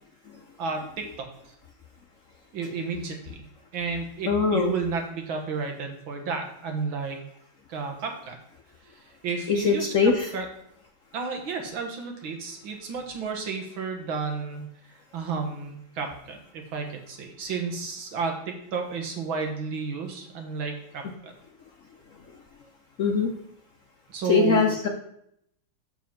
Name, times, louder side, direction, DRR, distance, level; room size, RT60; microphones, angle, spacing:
voice 1, 0.6-1.3 2.5-3.4 3.7-7.2 7.7-8.4 9.2-9.9 10.3-10.5 11.1-14.7 15.1-21.3 24.1-24.8, right 5 dB, 80° right, 3 dB, 2.1 m, -32 dB
voice 2, 4.3-4.7 9.5-10.3 23.0-23.3 24.3-24.9, left 5 dB, 60° left, 2 dB, 0.8 m, -21 dB
7.2 x 5.6 x 5.8 m, 0.72 s
omnidirectional pair, 2.2 m